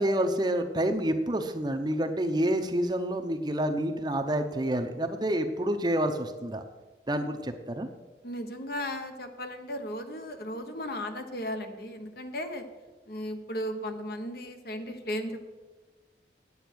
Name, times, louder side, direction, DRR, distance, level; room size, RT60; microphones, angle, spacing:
voice 1, 0.0-6.6 7.1-7.9, right 1 dB, 25° right, 6 dB, 0.7 m, -28 dB
voice 2, 8.2-12.6 13.1-15.5, equal, 60° left, 7 dB, 1.1 m, -36 dB
9.0 x 8.5 x 6.2 m, 1.2 s
head